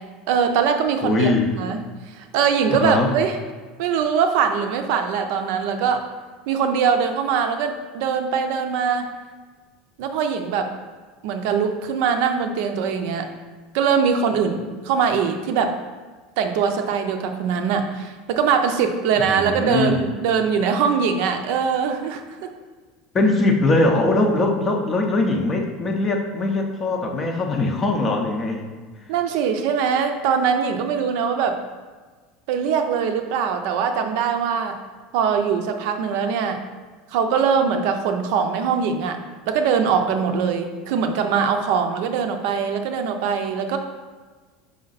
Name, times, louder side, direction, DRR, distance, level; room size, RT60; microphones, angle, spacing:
voice 1, 0.3-1.3 1.6-1.8 2.1-3.4 3.8-6.0 6.5-9.1 10.0-10.7 11.2-13.3 13.7-15.7 16.4-22.5 29.1-31.6 32.5-34.7 35.1-36.6 37.1-39.2 39.5-43.8, right 6 dB, 55° right, 6 dB, 0.5 m, -22 dB
voice 2, 1.0-1.5 2.7-3.1 19.2-20.0 23.1-28.6, left 2 dB, 15° left, 2 dB, 0.6 m, -21 dB
5.4 x 4.9 x 4.0 m, 1.4 s
cardioid pair, 180°, 0 cm